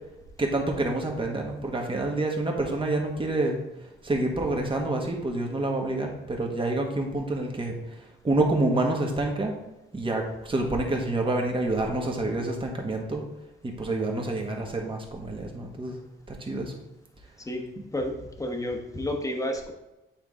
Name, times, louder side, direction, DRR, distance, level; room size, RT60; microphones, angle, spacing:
voice 1, 0.4-3.6 4.0-9.6 9.9-13.2 13.6-16.0 16.3-16.7, right 2 dB, 25° right, 1 dB, 1.5 m, -28 dB
voice 2, 17.9-19.7, left 1 dB, 15° left, 3 dB, 1.2 m, -31 dB
8.8 x 3.8 x 3.7 m, 1.0 s
cardioid pair, 90°, 20 cm